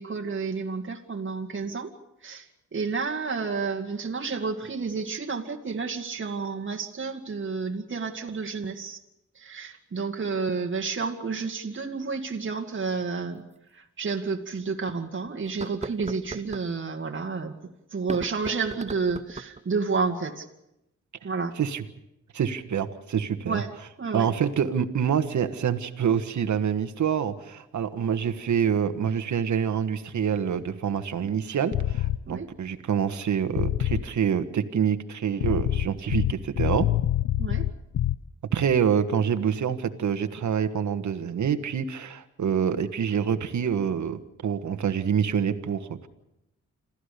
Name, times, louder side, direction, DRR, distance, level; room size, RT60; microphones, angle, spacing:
voice 1, 0.0-1.9 2.2-2.5 2.7-9.0 9.4-13.5 13.7-17.6 17.9-20.5 21.2-21.5 23.5-23.7 24.0-24.3 32.3-32.5 37.4-37.7, right 4 dB, 40° right, 3 dB, 2.1 m, -30 dB
sound 1, 13.5-13.6 14.2-14.3 15.4-16.7 17.9-19.6, right 4 dB, 20° right, 0.7 m, -38 dB
voice 2, 22.3-23.6 24.1-36.9 38.5-46.1, right 8 dB, 70° right, 9 dB, 1.5 m, -26 dB
sound 2, 31.7-32.2 33.6-34.1 35.4-38.1, left 12 dB, 80° left, 0.7 m, -25 dB
27.0 x 15.0 x 6.8 m, 0.88 s
cardioid pair, 85°, 30 cm